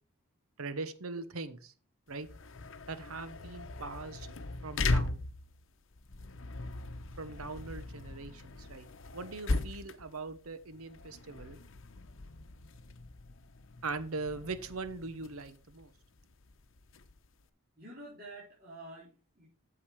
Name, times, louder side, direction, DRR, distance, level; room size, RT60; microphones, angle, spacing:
voice 1, 0.6-1.7 2.1-2.3 2.9-4.3 4.6-5.2 7.2-8.9 9.1-11.6 13.8-15.9, right 3 dB, 85° right, 12 dB, 1.0 m, -41 dB
sound 1, 2.1-17.5, left 2 dB, 65° left, 0.8 m, -39 dB
voice 2, 17.7-19.5, right 1 dB, 45° right, -7 dB, 4.0 m, -49 dB
8.7 x 7.0 x 4.8 m, 0.36 s
head